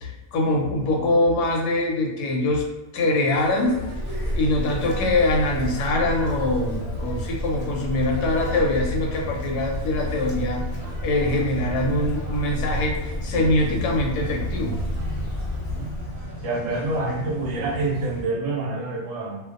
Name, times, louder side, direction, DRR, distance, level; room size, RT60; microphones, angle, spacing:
voice 1, 0.0-2.7 2.9-3.7 4.3-10.6 11.0-14.7, left 2 dB, 90° left, 1 dB, 1.1 m, -23 dB
sound 1, 3.3-18.2, equal, 15° right, 0.7 m, -38 dB
Wind, 3.6-16.4, equal, 55° left, 0.7 m, -31 dB
voice 2, 16.4-19.4, right 2 dB, 70° right, -2 dB, 0.9 m, -27 dB
2.6 x 2.1 x 2.4 m, 1.1 s
omnidirectional pair, 1.6 m